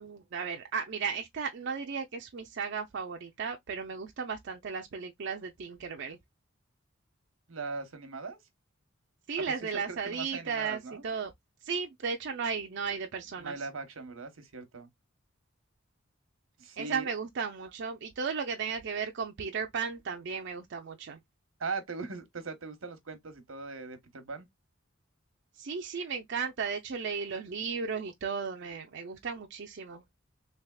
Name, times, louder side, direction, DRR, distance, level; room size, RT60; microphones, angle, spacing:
voice 1, 0.0-6.2 9.3-11.3 11.6-13.6 16.8-21.2 25.6-30.0, right 5 dB, 60° right, 0.5 m, -35 dB
voice 2, 7.5-8.4 9.9-11.0 13.4-14.9 16.6-17.1 21.6-24.5, right 4 dB, 85° right, 1.0 m, -40 dB
3.4 x 3.3 x 2.2 m
head